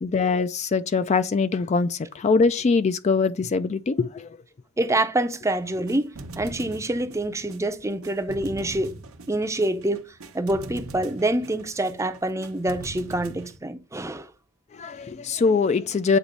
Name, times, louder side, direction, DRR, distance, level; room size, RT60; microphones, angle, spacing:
voice 1, 0.0-4.4 14.7-16.2, left 4 dB, 30° left, 0.3 m, -23 dB
voice 2, 4.8-8.9 9.3-14.3, right 1 dB, 15° right, 0.6 m, -26 dB
sound 1, 5.5-13.6, right 2 dB, 80° right, 0.8 m, -41 dB
8.2 x 3.0 x 5.1 m
head